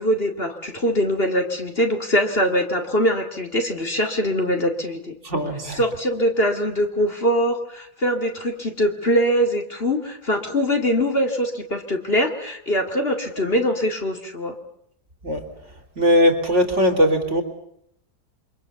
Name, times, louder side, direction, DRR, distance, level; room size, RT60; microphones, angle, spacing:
voice 1, 0.0-5.2 5.8-14.5, equal, 35° left, 4 dB, 2.5 m, -22 dB
voice 2, 5.2-5.8 15.2-15.5 16.0-17.4, equal, 45° right, 6 dB, 3.4 m, -19 dB
28.0 x 24.5 x 7.0 m, 0.73 s
omnidirectional pair, 1.8 m